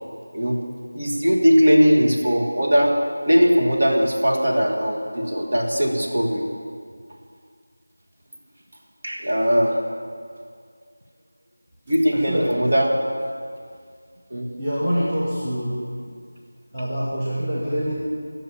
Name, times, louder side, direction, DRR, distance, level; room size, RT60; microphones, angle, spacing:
voice 1, 0.9-2.9 3.2-6.5 9.0-9.7 11.9-12.9 14.3-14.5, equal, 40° right, -1 dB, 1.6 m, -19 dB
voice 2, 12.1-12.5 14.6-15.9 16.7-17.9, equal, 5° right, -11 dB, 1.0 m, -25 dB
11.0 x 6.9 x 9.5 m, 2.1 s
figure-of-eight pair, 180°, 0 cm